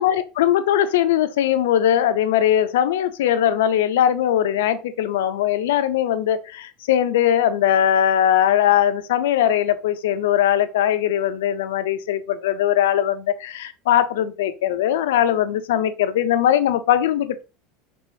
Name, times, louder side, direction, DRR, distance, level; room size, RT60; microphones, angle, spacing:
voice 1, 0.0-17.4, left 10 dB, 80° left, 0.4 m, -20 dB
4.3 x 3.0 x 2.6 m
hypercardioid pair, 90°, 0 cm